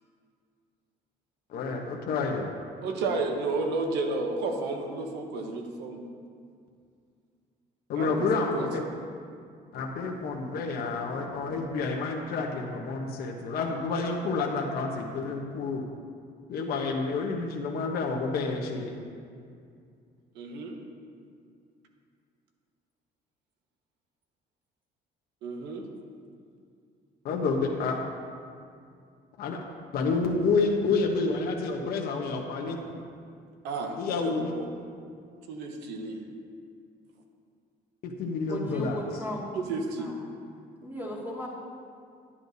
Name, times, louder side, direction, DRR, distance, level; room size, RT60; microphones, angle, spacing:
voice 1, 1.5-2.5 7.9-8.8 9.7-15.8 16.5-19.0 27.2-28.0 29.4-29.6 29.9-33.0 34.0-34.5 38.0-39.0, left 4 dB, 65° left, 1 dB, 0.9 m, -29 dB
voice 2, 2.8-6.0 7.9-8.7 20.3-20.8 25.4-25.9 33.6-34.7 35.5-36.2 39.7-40.1, right 3 dB, 85° right, 3 dB, 1.1 m, -32 dB
voice 3, 38.5-39.5 40.0-40.2 40.8-41.5, equal, 10° right, -4 dB, 2.1 m, -36 dB
11.0 x 9.8 x 2.7 m, 2.3 s
cardioid pair, 110°, 17 cm